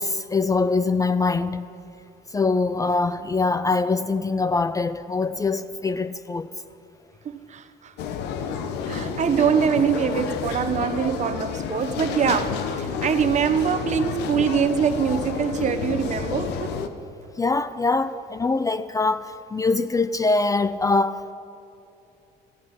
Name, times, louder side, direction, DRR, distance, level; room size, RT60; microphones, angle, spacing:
voice 1, 0.0-1.7 2.3-6.5 17.4-21.3, left 3 dB, 20° left, 0.4 m, -23 dB
voice 2, 7.2-7.9 8.8-16.8 18.1-18.2, right 7 dB, 45° right, 1.1 m, -24 dB
sound 1, 8.0-16.9, left 6 dB, 90° left, 1.1 m, -30 dB
18.0 x 14.5 x 5.5 m
cardioid pair, 110°, 17 cm